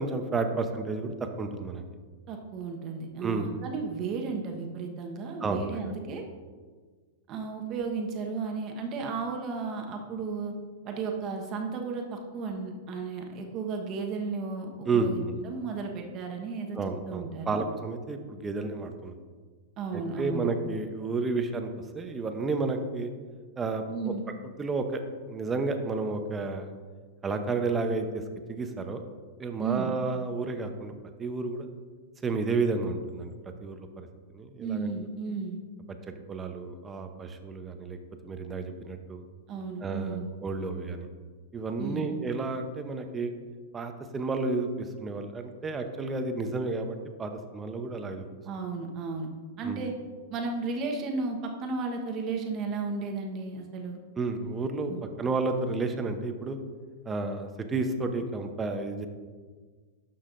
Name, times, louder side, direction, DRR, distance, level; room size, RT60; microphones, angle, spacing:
voice 1, 0.0-1.8 3.2-3.5 5.4-5.9 14.9-15.4 16.7-19.2 19.9-23.1 23.6-24.1 24.6-25.0 25.3-26.7 27.2-28.2 28.5-29.1 29.4-30.9 31.2-31.7 32.2-34.1 34.3-34.9 36.3-38.0 38.2-39.2 39.8-41.1 41.5-43.3 43.7-48.3 49.6-49.8 54.2-54.9 55.2-56.6 57.1-59.1, right 3 dB, 20° right, 6 dB, 0.8 m, -31 dB
voice 2, 2.3-6.2 7.3-10.5 10.8-16.8 17.1-17.6 19.8-20.6 23.9-24.2 29.6-29.9 34.6-35.6 39.5-40.3 41.8-42.1 48.4-49.3 49.6-49.9 50.3-54.0 54.9-55.0, right 4 dB, 35° right, 2 dB, 1.2 m, -34 dB
12.0 x 5.6 x 2.6 m, 1.5 s
hypercardioid pair, 120°, 0 cm